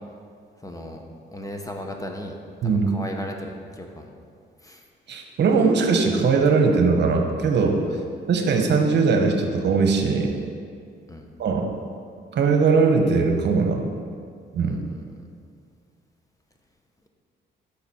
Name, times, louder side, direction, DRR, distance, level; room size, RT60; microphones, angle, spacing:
voice 1, 0.6-1.0 1.3-2.4 2.6-4.1 4.6-4.8 7.9-8.0 11.1-11.3 14.6-15.0, left 1 dB, 15° left, 3 dB, 1.0 m, -36 dB
voice 2, 5.1-7.8 8.3-10.3 11.4-11.7 12.3-13.9 14.5-14.8, right 4 dB, 60° right, 3 dB, 1.1 m, -20 dB
10.0 x 6.7 x 4.4 m, 2.2 s
cardioid pair, 90°, 20 cm